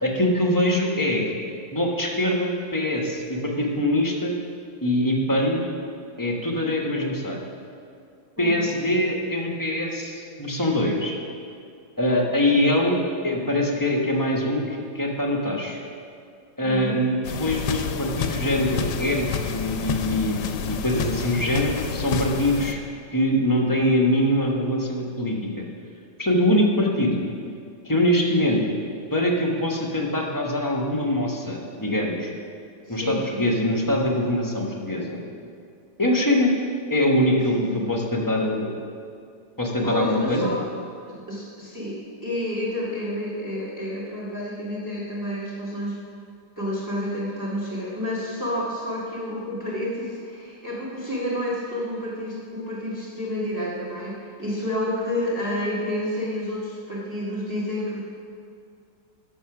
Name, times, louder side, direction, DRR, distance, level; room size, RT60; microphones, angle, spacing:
voice 1, 0.0-1.3 1.7-4.3 4.8-5.6 6.2-7.4 8.4-11.1 12.0-14.6 14.9-15.8 16.6-22.8 23.1-25.6 26.2-27.2 27.8-28.8 29.1-32.3 32.9-35.2 36.0-36.5 36.9-38.7 39.6-40.5, left 1 dB, 15° left, 0 dB, 0.9 m, -23 dB
voice 2, 8.4-8.7 16.6-17.0 32.8-33.7 37.5-37.9 39.8-40.6 41.1-45.9 46.6-58.0, left 1 dB, 10° right, -6 dB, 1.6 m, -30 dB
sound 1, 17.2-22.7, left 7 dB, 75° left, 1.2 m, -29 dB
11.5 x 6.9 x 5.9 m, 2.4 s
omnidirectional pair, 2.0 m